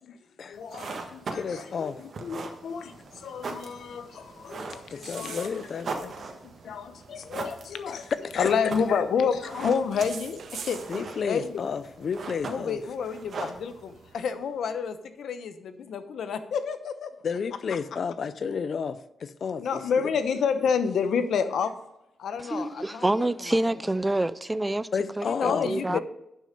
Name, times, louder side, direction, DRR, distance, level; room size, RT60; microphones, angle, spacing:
voice 1, 0.5-5.5 6.4-8.1 8.4-10.8 11.2-11.6 12.5-17.1 19.6-21.7 22.2-23.3 25.2-26.0, left 6 dB, 75° left, 0.9 m, -29 dB
sound 1, 0.5-14.1, right 3 dB, 55° right, 1.5 m, -40 dB
voice 2, 1.3-2.0 4.9-6.1 7.9-8.0 8.2-8.5 10.9-12.8 17.2-20.1 24.9-26.0, left 6 dB, 55° left, 0.5 m, -32 dB
sound 2, 3.0-14.7, right 6 dB, 70° right, 1.2 m, -49 dB
voice 3, 22.4-24.9 25.2-26.0, right 2 dB, 15° right, 0.4 m, -27 dB
11.0 x 6.3 x 5.2 m
cardioid pair, 105°, 0 cm